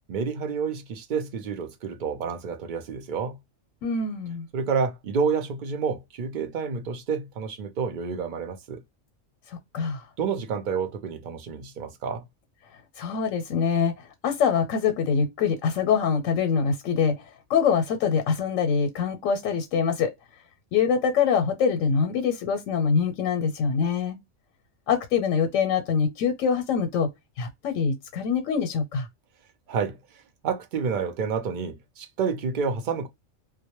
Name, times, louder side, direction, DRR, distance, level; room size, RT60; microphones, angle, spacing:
voice 1, 0.1-3.4 4.5-8.8 10.2-12.2 29.7-30.0 30.4-33.1, right 6 dB, 60° right, 0.5 m, -29 dB
voice 2, 3.8-4.5 9.7-10.0 13.0-13.9 14.2-17.2 17.5-20.1 20.7-24.2 24.9-27.1 27.4-29.1, left 6 dB, 85° left, 1.0 m, -24 dB
2.1 x 2.1 x 2.8 m
omnidirectional pair, 1.3 m